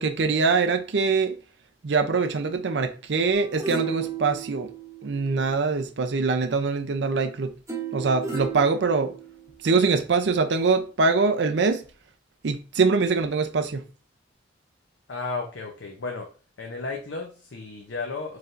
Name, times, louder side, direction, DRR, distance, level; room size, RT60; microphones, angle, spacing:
voice 1, 0.0-1.3 1.8-4.7 5.0-7.5 7.9-9.1 9.6-11.8 12.4-13.8, right 4 dB, 65° right, 0.5 m, -23 dB
sound 1, 3.3-5.6 7.7-9.7 10.2-10.3, right 7 dB, 15° right, 0.9 m, -34 dB
voice 2, 15.1-16.3 16.6-18.4, left 3 dB, 75° left, 0.7 m, -33 dB
4.7 x 3.2 x 2.5 m
head